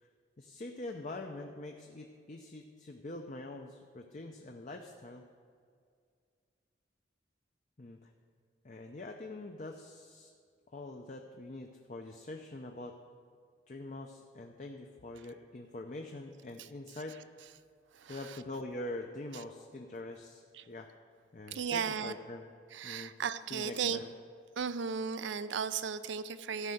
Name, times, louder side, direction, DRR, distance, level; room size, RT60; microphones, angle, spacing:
voice 1, 0.4-5.2 7.8-8.1 8.6-10.3 10.7-13.0 13.7-17.2 18.1-20.9 21.3-22.5 22.8-23.1 23.5-24.1, left 2 dB, 45° left, 3 dB, 0.6 m, -44 dB
voice 2, 17.9-18.4 19.3-19.4 20.5-20.7 21.5-22.1 22.7-24.0 24.6-26.7, right 6 dB, 85° right, 13 dB, 0.5 m, -36 dB
13.0 x 5.5 x 7.8 m, 2.2 s
head